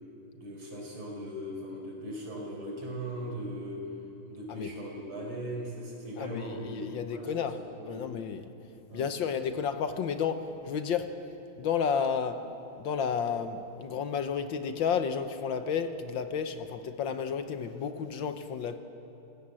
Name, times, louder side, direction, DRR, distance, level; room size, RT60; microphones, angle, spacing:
voice 1, 0.3-3.8 4.3-7.3 7.6-8.1 8.9-9.1, right 1 dB, 70° right, 0 dB, 5.2 m, -39 dB
voice 2, 6.2-7.6 7.8-8.5 8.9-11.2 11.6-18.8, left 7 dB, 65° left, 9 dB, 1.6 m, -32 dB
27.5 x 16.5 x 7.6 m, 2.9 s
omnidirectional pair, 2.3 m